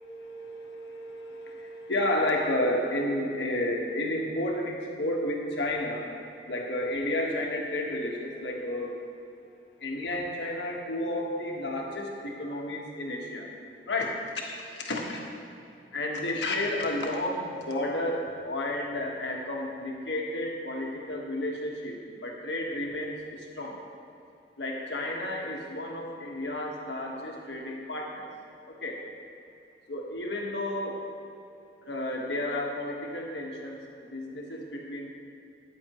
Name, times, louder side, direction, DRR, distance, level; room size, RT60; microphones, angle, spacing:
voice 1, 0.1-6.1 6.5-9.1 9.8-13.5 13.9-15.2 15.9-23.8 24.6-28.3 28.7-29.0 29.9-31.0 31.8-35.1, left 1 dB, 85° left, -1 dB, 1.5 m, -32 dB
14.0 x 9.7 x 3.1 m, 2.7 s
head